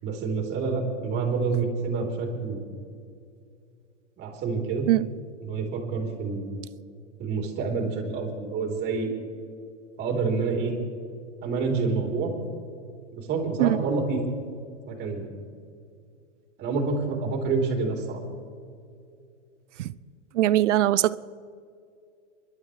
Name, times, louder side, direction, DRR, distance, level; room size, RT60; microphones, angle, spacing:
voice 1, 0.0-2.6 4.2-4.9 5.4-6.5 7.2-9.1 10.0-10.7 11.4-12.3 13.1-14.2 14.9-15.3 16.6-18.2, right 4 dB, 30° right, 0 dB, 3.4 m, -28 dB
voice 2, 20.3-21.2, right 14 dB, 75° right, 17 dB, 0.6 m, -21 dB
28.0 x 12.0 x 3.2 m, 2.3 s
hypercardioid pair, 145°, 37 cm